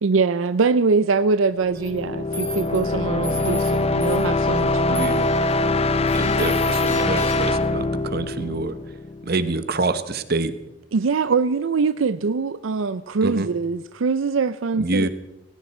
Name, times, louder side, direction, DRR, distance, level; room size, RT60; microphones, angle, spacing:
voice 1, 0.0-5.1 10.9-15.1, right 4 dB, 85° right, 14 dB, 0.5 m, -23 dB
sound 1, 1.6-9.4, left 2 dB, 30° left, 0.6 m, -23 dB
sound 2, 1.7-1.9 2.3-2.8 3.2-3.7 4.0-4.6 4.9-5.5 6.1-7.6, left 1 dB, 15° left, 4.1 m, -36 dB
voice 2, 4.9-5.3 6.1-8.8 9.2-10.5 13.2-13.5 14.8-15.1, right 2 dB, 55° right, 12 dB, 1.2 m, -26 dB
18.5 x 17.0 x 4.4 m, 0.92 s
head